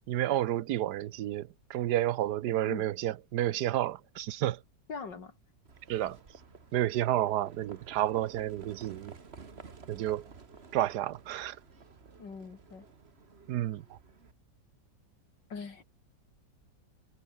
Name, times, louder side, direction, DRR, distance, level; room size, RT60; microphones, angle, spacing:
voice 1, 0.1-4.6 5.9-6.2 6.7-9.1 9.9-10.3 10.7-11.6 13.5-14.0, right 13 dB, 70° right, 1.2 m, -30 dB
voice 2, 4.9-5.4 12.2-12.8 15.5-15.8, left 5 dB, 85° left, 3.4 m, -42 dB
Livestock farm animals working animals, 5.6-14.3, right 5 dB, 35° right, 1.8 m, -53 dB
omnidirectional pair, 1.9 m